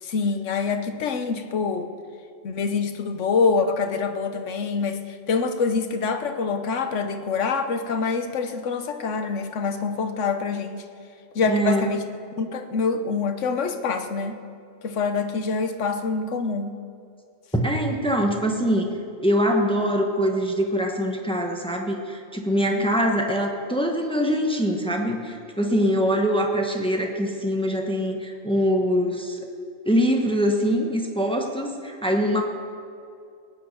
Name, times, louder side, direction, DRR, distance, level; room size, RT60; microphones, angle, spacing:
voice 1, 0.0-1.9 2.4-10.9 11.3-12.0 12.4-14.4 14.8-16.8 22.7-22.8, left 4 dB, 70° left, 7 dB, 1.3 m, -25 dB
voice 2, 11.5-11.9 17.5-18.9 19.2-29.4 29.9-32.4, equal, 5° left, 2 dB, 1.2 m, -23 dB
18.5 x 9.4 x 6.7 m, 2.4 s
omnidirectional pair, 1.3 m